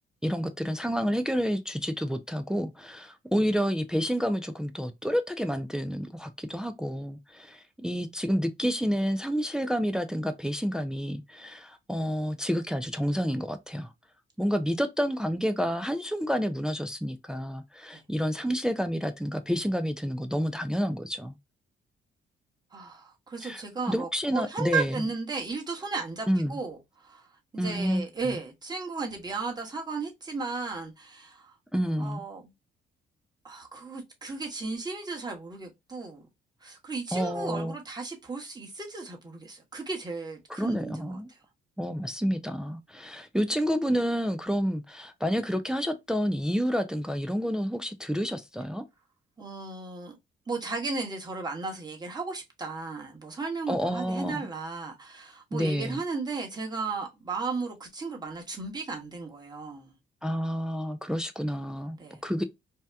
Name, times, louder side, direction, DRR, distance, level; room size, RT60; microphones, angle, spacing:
voice 1, 0.2-13.9 14.4-21.4 23.4-23.6 23.9-25.0 26.3-26.6 27.6-28.4 31.7-32.2 37.1-37.7 40.6-41.3 41.8-48.8 53.7-54.5 55.5-56.0 60.2-62.4, equal, 5° right, 0.4 m, -29 dB
voice 2, 22.7-27.3 27.5-31.5 32.0-32.5 33.4-36.3 36.6-41.4 49.4-50.2 50.5-59.9 62.0-62.2, right 4 dB, 20° right, 1.1 m, -35 dB
2.8 x 2.2 x 3.3 m
cardioid pair, 90°, 20 cm